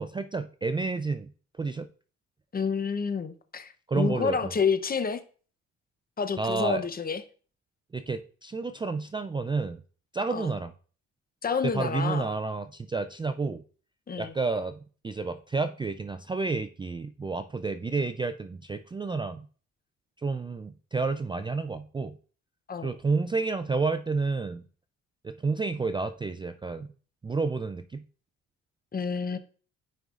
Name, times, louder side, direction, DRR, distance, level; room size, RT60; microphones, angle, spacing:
voice 1, 0.0-1.3 1.6-1.9 3.9-4.5 6.4-6.9 7.9-9.8 10.1-10.7 11.6-13.6 14.2-19.5 20.2-22.2 22.8-24.6 25.2-26.9 27.2-28.0, right 4 dB, 15° right, 0.3 m, -30 dB
voice 2, 2.5-5.2 6.2-7.2 10.3-10.5 11.4-12.3 14.1-14.3 22.7-22.9 28.9-29.4, left 5 dB, 30° left, 0.7 m, -29 dB
9.1 x 5.3 x 2.5 m
cardioid pair, 90°, 30 cm